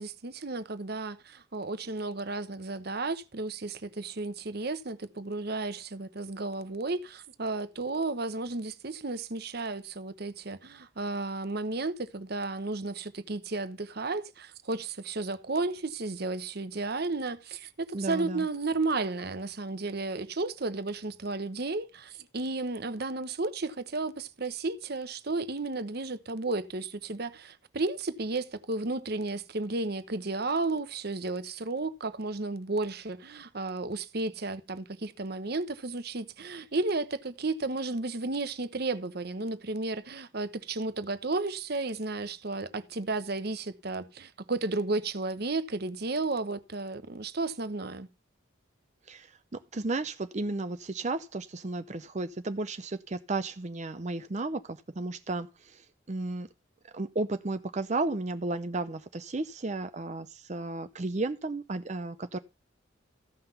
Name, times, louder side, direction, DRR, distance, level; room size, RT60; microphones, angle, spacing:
voice 1, 0.0-48.1, right 3 dB, 55° right, 1.0 m, -33 dB
voice 2, 17.9-18.5 49.1-56.5 56.9-62.4, right 2 dB, 35° right, 0.6 m, -33 dB
15.0 x 5.9 x 5.6 m
head